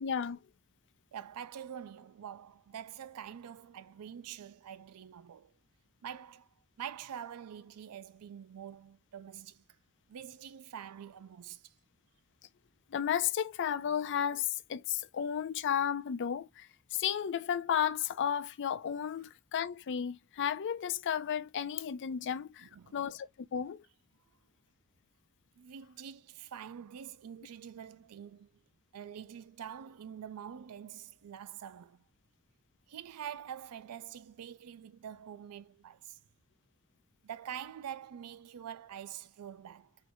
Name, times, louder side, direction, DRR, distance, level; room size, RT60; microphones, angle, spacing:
voice 1, 0.0-0.4 12.9-23.8, left 8 dB, 55° left, 0.4 m, -33 dB
voice 2, 1.1-5.5 6.0-6.5 6.8-9.6 10.1-11.7 22.6-23.0 25.6-28.5 28.9-32.1 32.9-36.2 37.2-40.0, right 9 dB, 85° right, 0.4 m, -46 dB
4.3 x 2.5 x 2.6 m
head